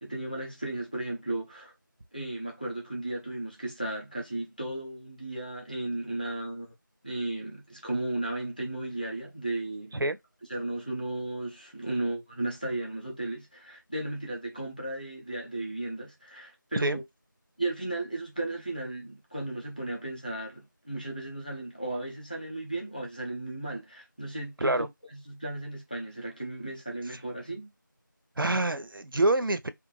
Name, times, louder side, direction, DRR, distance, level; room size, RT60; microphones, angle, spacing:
voice 1, 0.0-1.7 2.1-6.7 7.0-10.0 10.5-17.0 17.6-27.7, right 2 dB, 25° left, 0.7 m, -35 dB
voice 2, 28.4-29.7, right 2 dB, 85° right, 0.5 m, -26 dB
2.5 x 2.3 x 3.0 m
figure-of-eight pair, 175°, 11 cm